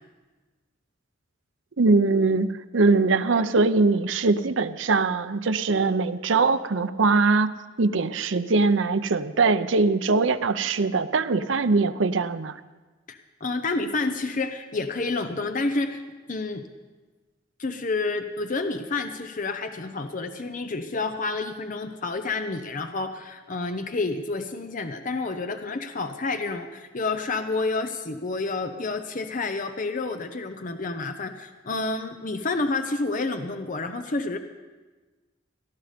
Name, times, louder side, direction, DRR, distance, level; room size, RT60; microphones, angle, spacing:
voice 1, 1.8-7.5 7.8-12.6, right 3 dB, 80° right, 11 dB, 0.7 m, -22 dB
voice 2, 13.1-16.0 16.3-16.6 17.6-34.4, left 3 dB, 45° left, 7 dB, 0.8 m, -29 dB
18.5 x 12.5 x 5.1 m, 1.3 s
head